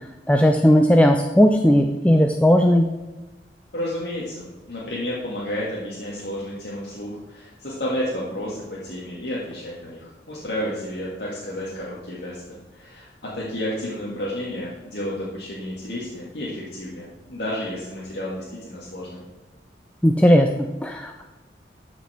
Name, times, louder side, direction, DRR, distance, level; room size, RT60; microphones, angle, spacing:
voice 1, 0.3-2.9 20.0-21.2, equal, 5° left, 3 dB, 0.5 m, -17 dB
voice 2, 3.7-12.4 12.7-13.1 13.3-19.2, left 1 dB, 70° left, -7 dB, 2.2 m, -31 dB
13.0 x 6.0 x 4.4 m, 1.1 s
head